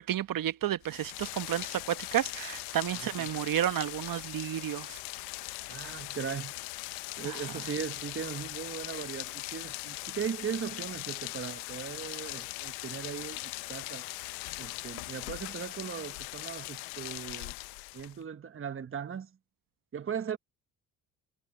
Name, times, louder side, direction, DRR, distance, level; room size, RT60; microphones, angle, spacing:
voice 1, 0.0-5.0 7.2-7.4, right 11 dB, 55° right, 1.2 m, -31 dB
Rain, 0.8-18.2, left 25 dB, 80° left, 0.9 m, -40 dB
voice 2, 2.9-3.3 5.7-6.5 7.2-14.1 14.6-17.5 17.9-19.3 19.9-20.4, right 7 dB, 30° right, 1.1 m, -38 dB
hypercardioid pair, 60°, 41 cm